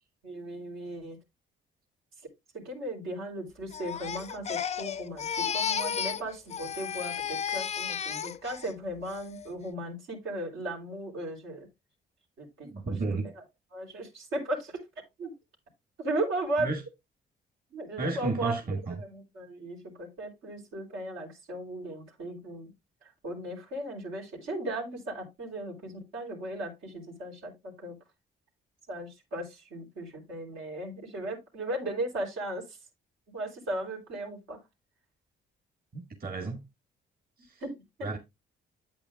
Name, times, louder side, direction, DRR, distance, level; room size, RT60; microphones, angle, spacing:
voice 1, 0.2-1.2 2.5-11.7 12.4-12.9 13.7-14.8 15.2-15.3 16.0-16.7 17.7-18.6 18.9-22.7 23.0-28.0 28.9-32.8 33.3-34.6 37.6-38.1, right 1 dB, 90° right, 3.5 m, -36 dB
Crying sobbing, 3.7-6.2 6.5-8.7 9.1-9.5, left 7 dB, 35° left, 0.4 m, -33 dB
voice 2, 12.6-13.3 16.6-16.8 18.0-18.9 35.9-36.6 37.4-37.6 38.0-38.2, right 3 dB, 45° right, 1.7 m, -32 dB
8.7 x 8.5 x 2.4 m
cardioid pair, 90°, 20 cm